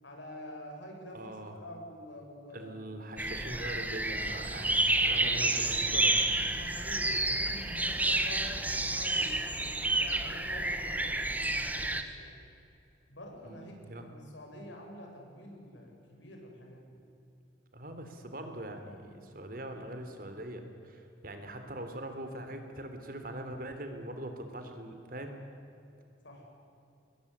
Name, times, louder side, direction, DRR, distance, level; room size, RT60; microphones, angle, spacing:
voice 1, 0.0-2.8 6.5-9.3 9.9-12.4 13.1-17.0 26.2-26.4, left 1 dB, 85° left, 1 dB, 7.5 m, -47 dB
voice 2, 1.1-1.5 2.5-6.2 13.4-14.0 17.7-25.3, right 1 dB, 50° right, 6 dB, 3.5 m, -42 dB
sound 1, 3.2-12.0, right 2 dB, 10° right, 1.5 m, -30 dB
26.5 x 21.0 x 9.9 m, 2.8 s
head